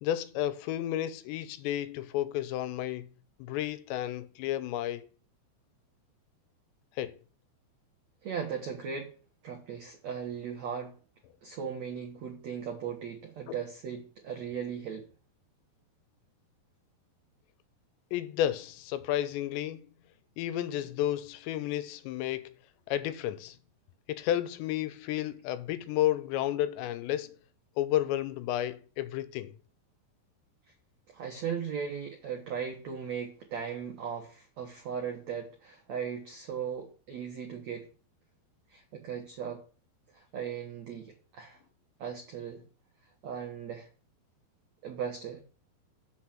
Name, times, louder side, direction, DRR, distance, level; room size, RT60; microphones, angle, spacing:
voice 1, 0.0-3.1 3.4-5.1 7.0-7.2 18.1-19.9 20.4-22.5 22.9-23.6 24.1-27.3 27.8-29.5, left 12 dB, 85° left, 2.8 m, -32 dB
voice 2, 8.2-9.1 9.4-11.0 11.4-15.1 30.7-30.8 31.1-37.9 38.7-39.6 40.1-41.6 42.0-42.6 43.2-43.9 44.8-45.4, right 7 dB, 90° right, 1.5 m, -37 dB
7.5 x 6.4 x 5.8 m
omnidirectional pair, 5.1 m